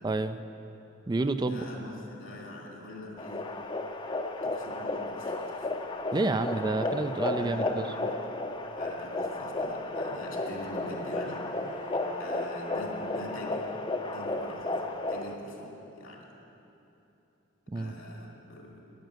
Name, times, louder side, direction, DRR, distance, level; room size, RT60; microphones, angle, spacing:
voice 1, 0.0-0.4 1.1-1.6 6.1-7.9 17.7-17.9, right 2 dB, 20° right, 10 dB, 0.3 m, -29 dB
voice 2, 1.4-3.5 4.4-5.7 7.3-8.2 8.8-11.5 12.2-13.7 14.1-16.3 17.7-18.8, left 1 dB, 80° left, -1 dB, 2.6 m, -44 dB
sound 1, 3.2-15.3, left 2 dB, 25° left, 0.6 m, -33 dB
Bowed string instrument, 10.1-13.8, left 1 dB, 85° right, 2.7 m, -47 dB
10.0 x 9.1 x 9.2 m, 2.9 s
head